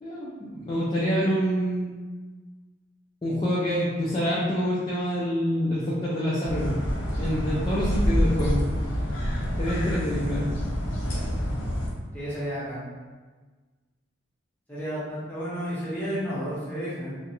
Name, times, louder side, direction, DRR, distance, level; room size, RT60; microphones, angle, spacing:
voice 1, 0.0-2.0 3.2-6.8 7.1-8.6 9.6-10.5, equal, 25° left, -8 dB, 0.3 m, -26 dB
sound 1, 6.4-11.9, equal, 90° left, 0.6 m, -27 dB
voice 2, 12.1-12.8 14.7-17.2, equal, 10° left, -9 dB, 0.7 m, -32 dB
2.3 x 2.0 x 2.8 m, 1.3 s
head